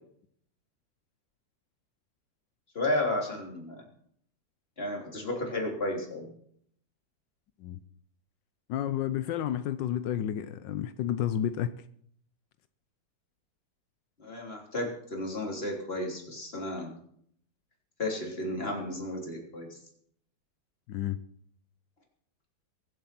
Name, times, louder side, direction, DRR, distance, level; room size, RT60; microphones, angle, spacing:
voice 1, 2.8-3.9 4.8-6.3 14.2-17.0 18.0-19.8, left 1 dB, 30° left, 3.6 m, -33 dB
voice 2, 8.7-11.7 20.9-21.2, left 10 dB, 85° left, 1.4 m, -31 dB
23.0 x 7.9 x 5.9 m
omnidirectional pair, 1.9 m